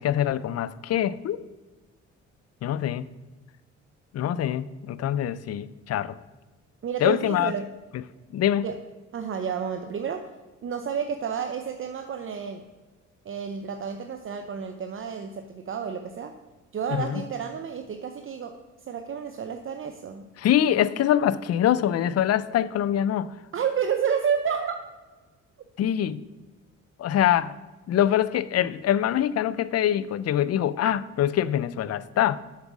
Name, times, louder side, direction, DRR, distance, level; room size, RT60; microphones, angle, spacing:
voice 1, 0.0-1.4 2.6-3.1 4.1-6.2 7.0-7.5 8.3-8.7 16.9-17.2 20.4-23.3 25.8-26.2 27.0-27.5 27.9-32.4, left 11 dB, 55° left, 0.5 m, -24 dB
voice 2, 6.8-7.7 8.6-8.8 9.1-10.3 10.6-12.7 13.2-16.4 16.7-18.6 18.9-20.3 23.5-24.8, right 7 dB, 45° right, 0.7 m, -30 dB
7.4 x 7.3 x 6.2 m
cardioid pair, 90°, 30 cm